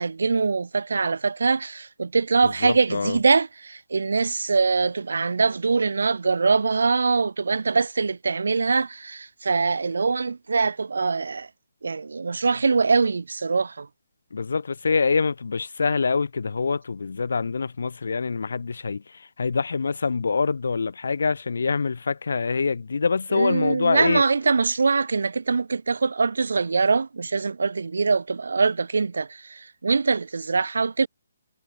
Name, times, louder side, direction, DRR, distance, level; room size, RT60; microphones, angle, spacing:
voice 1, 0.0-11.5 11.8-13.9 23.3-31.1, right 4 dB, 80° right, 1.2 m, -23 dB
voice 2, 2.6-3.2 14.3-24.2, left 4 dB, 75° left, 1.9 m, -25 dB
hypercardioid pair, 160°, 0 cm